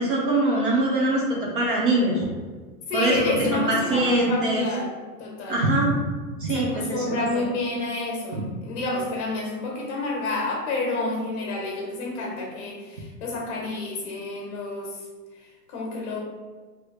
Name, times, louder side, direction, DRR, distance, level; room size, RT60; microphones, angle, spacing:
voice 1, 0.0-2.3 2.9-4.6 5.5-6.0 6.4-7.4, right 1 dB, 35° right, -3 dB, 0.4 m, -23 dB
voice 2, 2.9-4.9 5.2-5.6 6.5-15.0 15.7-16.2, left 2 dB, 45° left, -1 dB, 1.0 m, -29 dB
3.0 x 2.6 x 3.2 m, 1.4 s
supercardioid pair, 170°, 50 cm